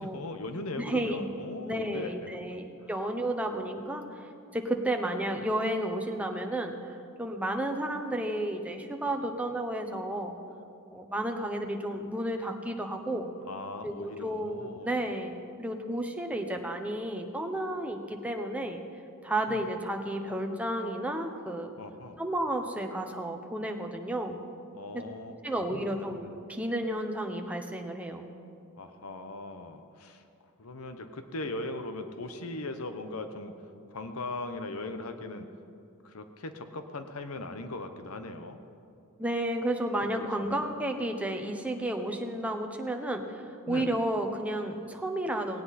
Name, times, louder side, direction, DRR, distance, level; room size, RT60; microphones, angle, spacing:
voice 1, 0.0-2.3 2.8-2.9 13.4-15.0 19.5-19.6 21.8-22.2 24.7-25.4 25.7-26.2 28.8-30.2 30.6-33.5 33.9-35.5 36.0-38.6 40.2-40.6 43.7-44.0, left 2 dB, 80° left, 8 dB, 1.0 m, -39 dB
voice 2, 0.8-1.2 1.6-4.3 4.5-10.3 10.9-13.3 13.8-18.8 19.2-21.7 22.2-24.4 25.4-28.2 39.2-45.6, right 1 dB, 5° right, 3 dB, 1.1 m, -32 dB
18.0 x 17.5 x 4.3 m, 2.5 s
head